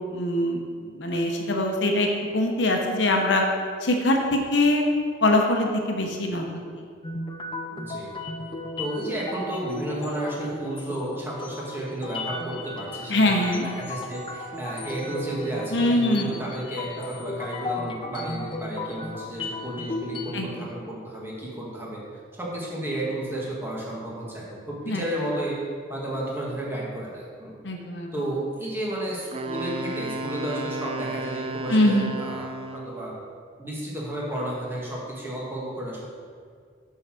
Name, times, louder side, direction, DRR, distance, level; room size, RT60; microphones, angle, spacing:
voice 1, 0.1-0.6 0.9-2.1 2.3-3.4 3.8-4.8 5.2-6.4 13.1-13.6 15.7-16.3 20.3-20.5 24.9-25.0 27.6-28.1 31.7-32.1, left 1 dB, 65° left, 2 dB, 0.9 m, -22 dB
sound 1, 7.0-20.3, left 2 dB, 25° left, 0.5 m, -35 dB
voice 2, 7.7-8.1 8.8-25.6 25.9-27.6 28.1-33.1 33.6-36.0, right 1 dB, 10° right, -5 dB, 1.7 m, -32 dB
Wind instrument woodwind instrument, 29.3-33.0, right 2 dB, 30° right, 0.4 m, -33 dB
7.7 x 4.7 x 6.1 m, 2.1 s
head